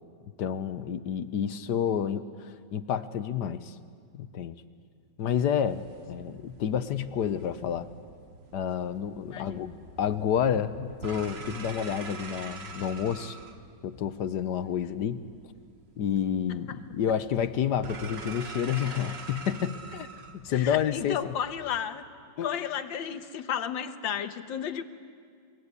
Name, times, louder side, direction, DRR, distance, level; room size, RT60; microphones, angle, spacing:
voice 1, 0.4-3.7 4.1-4.5 5.2-7.9 8.5-9.7 10.0-13.4 13.8-15.2 16.0-20.1 20.3-21.3 22.4-22.6, left 8 dB, 70° left, 12 dB, 1.4 m, -29 dB
sound 1, 5.6-21.8, right 4 dB, 40° right, 1.3 m, -45 dB
voice 2, 9.3-9.7 20.5-22.1 22.4-24.8, left 8 dB, 90° left, 10 dB, 1.8 m, -33 dB
28.0 x 22.0 x 8.2 m, 2.1 s
omnidirectional pair, 2.0 m